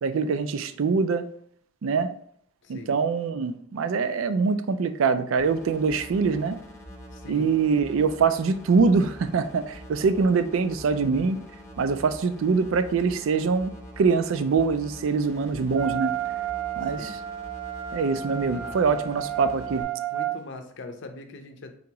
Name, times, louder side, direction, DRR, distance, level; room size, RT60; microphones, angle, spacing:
voice 1, 0.0-1.3 1.8-2.1 2.7-6.6 7.3-11.4 11.8-16.1 16.8-17.0 17.9-19.9, right 5 dB, 70° right, 11 dB, 0.4 m, -24 dB
voice 2, 2.6-2.9 7.1-7.5 16.8-17.2 18.5-19.0 20.1-21.8, left 2 dB, 60° left, 6 dB, 0.6 m, -42 dB
sound 1, 5.4-19.8, equal, 15° left, 0.8 m, -45 dB
Wind instrument woodwind instrument, 15.7-20.4, right 12 dB, 85° right, 1.1 m, -32 dB
3.9 x 2.9 x 4.6 m, 0.63 s
head